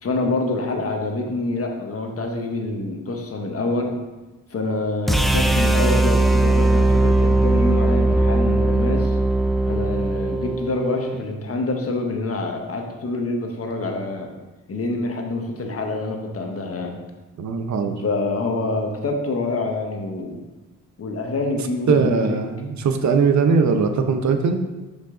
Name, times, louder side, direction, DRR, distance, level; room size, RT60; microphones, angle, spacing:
voice 1, 0.0-4.0 4.5-9.2 9.7-14.3 14.7-17.0 18.0-20.4 21.0-22.4, left 2 dB, 45° left, 3 dB, 1.2 m, -26 dB
sound 1, 5.1-11.2, right 2 dB, ahead, 0.5 m, -19 dB
voice 2, 17.4-18.0 21.9-24.6, right 5 dB, 60° right, 7 dB, 0.7 m, -20 dB
6.1 x 5.2 x 3.8 m, 1.1 s
cardioid pair, 65°, 32 cm